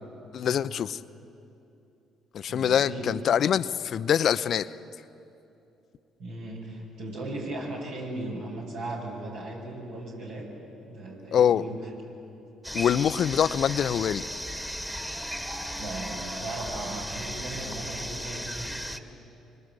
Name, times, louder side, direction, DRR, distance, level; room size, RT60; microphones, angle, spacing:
voice 1, 0.3-1.0 2.3-4.8 11.3-11.6 12.7-14.2, left 9 dB, 55° left, 15 dB, 0.6 m, -24 dB
voice 2, 2.5-3.0 6.2-10.5 10.9-11.8 15.8-18.8, right 2 dB, 70° right, -3 dB, 7.6 m, -37 dB
sound 1, 12.6-19.0, equal, 5° right, 2.0 m, -36 dB
25.5 x 25.5 x 8.3 m, 2.8 s
hypercardioid pair, 50°, 0 cm